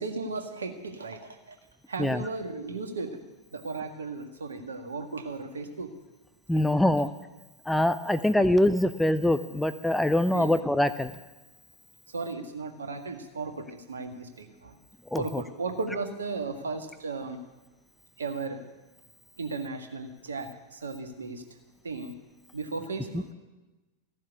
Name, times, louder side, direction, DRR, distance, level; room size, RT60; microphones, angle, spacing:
voice 1, 0.0-1.6 1.9-3.2 3.5-5.9 8.4-8.5 10.3-10.5 12.1-14.8 15.1-17.4 18.2-18.6 19.4-21.4 21.8-22.1 22.5-23.3, right 3 dB, 70° right, 5 dB, 1.7 m, -35 dB
voice 2, 6.5-7.1 7.7-11.1 15.1-15.2, left 1 dB, 5° left, 12 dB, 0.6 m, -24 dB
15.0 x 7.4 x 9.6 m, 1.1 s
figure-of-eight pair, 90°, 0 cm